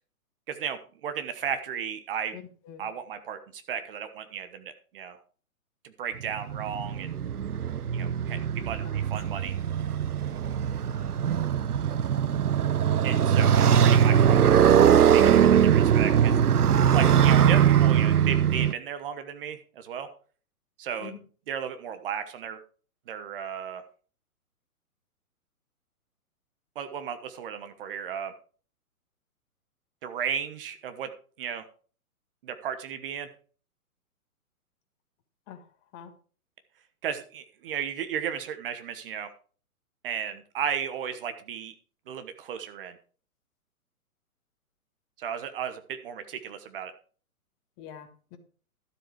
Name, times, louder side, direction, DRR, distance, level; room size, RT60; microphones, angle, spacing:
voice 1, 0.5-2.4 2.8-5.2 5.8-7.1 7.9-9.6 13.0-16.4 16.9-20.1 20.8-21.2 21.5-22.6 23.1-23.8 26.7-28.3 30.0-31.1 31.4-31.6 32.4-33.3 37.0-39.3 40.0-41.7 42.1-43.0 45.2-46.9, right 8 dB, 40° right, 10 dB, 1.1 m, -34 dB
voice 2, 2.3-2.8 9.3-9.4 10.9-11.2 12.2-12.3 21.0-21.2 35.5-35.6 35.9-36.1 47.8-48.4, left 9 dB, 25° left, 7 dB, 1.6 m, -45 dB
Motorcycle, 6.2-18.7, right 9 dB, 80° right, 0.6 m, -21 dB
12.5 x 7.6 x 4.7 m, 0.40 s
figure-of-eight pair, 120°, 44 cm